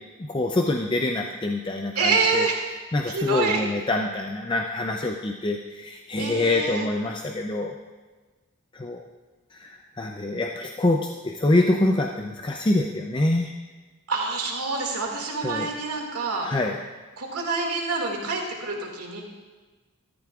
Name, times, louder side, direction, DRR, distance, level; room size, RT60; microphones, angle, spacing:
voice 1, 0.3-2.5 2.9-7.7 8.7-9.0 9.5-13.5 15.4-15.7 16.4-16.8, left 2 dB, 20° left, 2 dB, 0.5 m, -25 dB
voice 2, 1.9-2.6 3.1-3.6 6.2-6.9 14.1-16.5 17.2-19.2, right 4 dB, 90° right, 0 dB, 2.2 m, -27 dB
14.0 x 13.5 x 2.4 m, 1.3 s
head